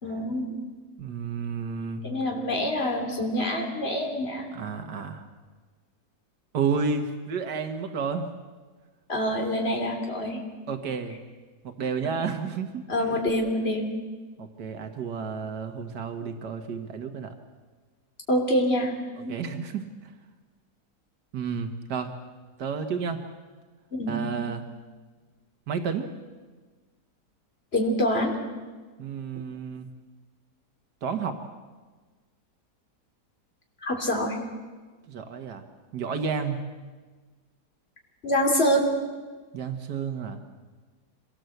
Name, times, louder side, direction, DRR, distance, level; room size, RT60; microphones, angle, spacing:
voice 1, 0.0-0.5 2.0-4.5 9.1-10.4 12.0-12.1 12.9-13.9 18.3-18.9 19.2-19.3 23.9-24.3 27.7-28.3 33.8-34.4 38.2-38.9, equal, 35° left, 1 dB, 3.5 m, -26 dB
voice 2, 1.0-2.2 4.5-5.2 6.5-8.3 10.7-11.2 11.6-13.1 14.4-17.4 19.2-20.1 21.3-22.1 22.6-23.2 24.1-24.6 25.7-26.1 29.0-29.9 31.0-31.4 35.1-35.6 35.9-36.6 39.5-40.4, right 5 dB, 90° right, 6 dB, 1.9 m, -31 dB
25.5 x 18.5 x 7.9 m, 1.4 s
omnidirectional pair, 1.7 m